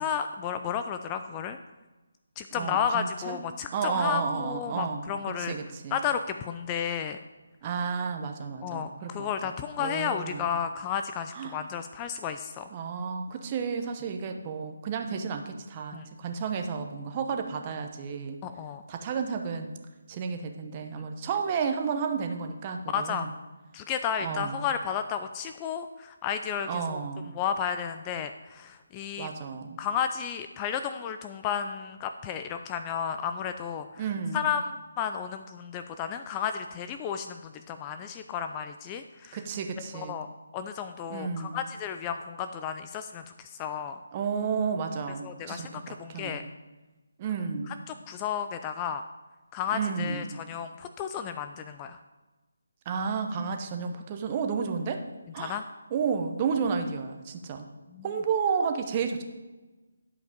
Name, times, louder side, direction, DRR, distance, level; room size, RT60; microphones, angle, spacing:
voice 1, 0.0-1.6 2.4-5.5 5.9-7.2 8.6-12.7 15.9-16.1 18.4-18.8 20.9-21.0 22.9-23.3 23.7-27.0 27.3-29.3 29.8-34.0 34.3-39.4 39.9-40.3 40.5-44.0 45.2-46.4 47.9-49.1 49.5-52.0 55.4-55.6 57.9-58.1, left 8 dB, 20° left, 8 dB, 0.3 m, -32 dB
voice 2, 2.5-3.4 3.7-5.1 5.4-6.0 7.6-9.5 9.8-10.5 11.3-11.6 12.7-18.4 18.9-19.7 20.1-23.3 24.2-24.7 26.7-27.3 29.2-29.8 34.0-34.5 39.3-40.2 41.1-41.6 44.1-46.4 47.2-47.8 49.7-50.3 52.8-55.0 55.3-55.6 55.9-57.7 58.0-59.2, right 6 dB, 25° right, 5 dB, 0.8 m, -32 dB
11.0 x 5.1 x 5.1 m, 1.2 s
figure-of-eight pair, 160°, 0 cm